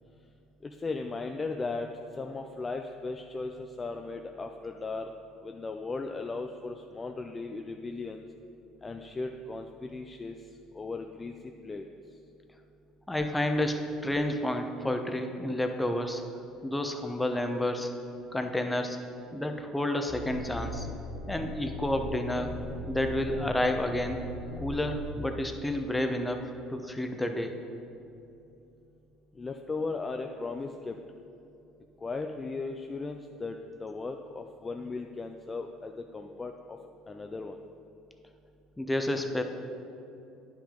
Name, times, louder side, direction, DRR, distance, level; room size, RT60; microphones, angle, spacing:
voice 1, 0.6-1.9 2.2-5.1 5.4-8.2 8.8-10.4 10.7-11.3 11.6-11.8 29.4-31.0 32.0-33.5 33.8-36.8 37.1-37.6, left 3 dB, 25° left, 4 dB, 0.4 m, -37 dB
voice 2, 13.1-16.2 16.6-17.9 18.3-19.0 19.3-20.9 21.3-22.5 22.9-24.2 24.6-27.5 38.8-39.4, left 1 dB, 10° left, 5 dB, 0.8 m, -30 dB
sound 1, 20.1-25.1, equal, 80° right, 2.0 m, -39 dB
9.6 x 6.0 x 3.8 m, 2.7 s
hypercardioid pair, 70°, 0 cm